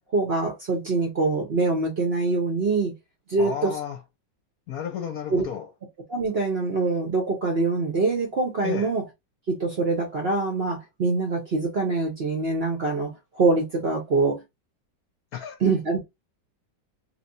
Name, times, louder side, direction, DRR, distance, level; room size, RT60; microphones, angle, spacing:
voice 1, 0.1-2.9 3.3-3.7 5.3-5.4 6.1-9.0 9.5-14.4 15.6-16.0, right 3 dB, 45° right, 0.8 m, -24 dB
voice 2, 3.3-4.0 4.7-5.7 8.6-8.9 15.3-15.6, left 8 dB, 65° left, 1.0 m, -32 dB
3.3 x 3.0 x 2.6 m
omnidirectional pair, 1.9 m